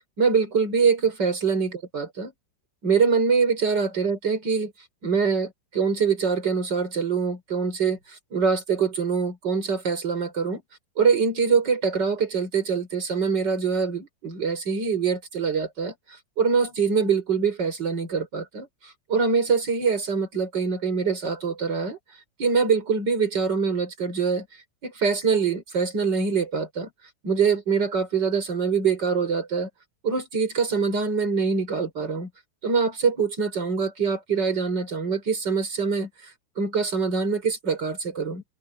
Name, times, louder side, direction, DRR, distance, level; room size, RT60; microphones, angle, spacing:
voice 1, 0.2-2.3 2.8-4.7 5.0-10.6 11.0-15.9 16.4-22.0 22.4-24.5 24.8-26.9 27.2-29.7 30.0-32.3 32.6-36.1 36.6-38.4, right 5 dB, 65° right, 5.3 m, -24 dB
omnidirectional pair, 2.0 m